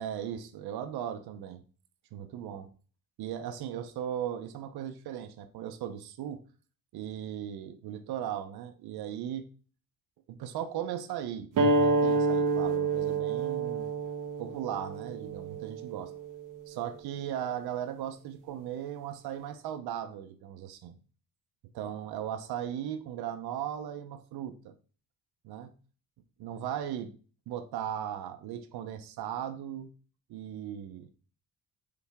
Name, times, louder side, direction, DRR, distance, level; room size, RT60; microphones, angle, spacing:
voice 1, 0.0-1.6 2.1-2.7 3.2-6.4 6.9-9.5 10.3-11.5 11.7-13.9 14.4-16.1 16.7-21.0 21.7-24.7 25.4-25.7 26.4-27.1 27.5-29.9 30.3-31.1, right 10 dB, 85° right, 7 dB, 0.8 m, -37 dB
sound 1, 11.6-16.7, right 3 dB, 55° right, 1.0 m, -28 dB
6.9 x 4.1 x 3.5 m, 0.39 s
cardioid pair, 180°, 37 cm